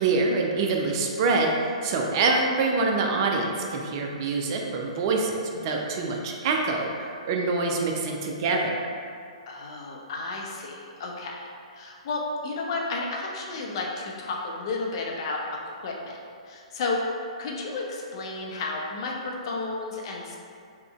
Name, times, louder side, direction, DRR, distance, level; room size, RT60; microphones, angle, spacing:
voice 1, 0.0-1.5 1.8-8.9, right 3 dB, 40° right, 0 dB, 0.4 m, -25 dB
voice 2, 9.5-11.4 11.7-15.4 15.7-16.2 16.5-17.0 17.4-20.4, left 3 dB, 50° left, -1 dB, 0.5 m, -32 dB
3.6 x 2.1 x 2.3 m, 2.4 s
figure-of-eight pair, 120°, 3 cm